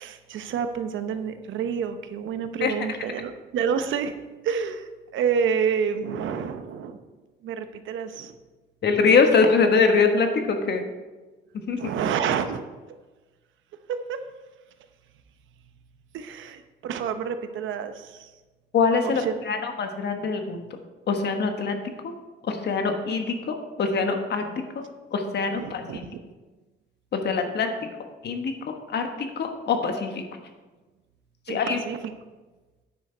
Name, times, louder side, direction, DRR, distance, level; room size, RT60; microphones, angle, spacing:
voice 1, 0.0-4.1 4.4-7.0 7.4-8.3 11.8-12.6 13.9-14.2 16.1-18.3 19.0-19.3 25.6-26.2 31.5-32.0, right 7 dB, 75° right, 9 dB, 0.8 m, -29 dB
voice 2, 8.8-10.8 11.7-11.9 18.7-20.6 21.1-21.8 22.0-22.1 22.4-24.8 25.1-26.1 27.1-27.9 28.2-30.2 31.5-31.8, left 5 dB, 60° left, 5 dB, 1.3 m, -24 dB
9.5 x 6.5 x 4.5 m, 1.2 s
cardioid pair, 90°, 20 cm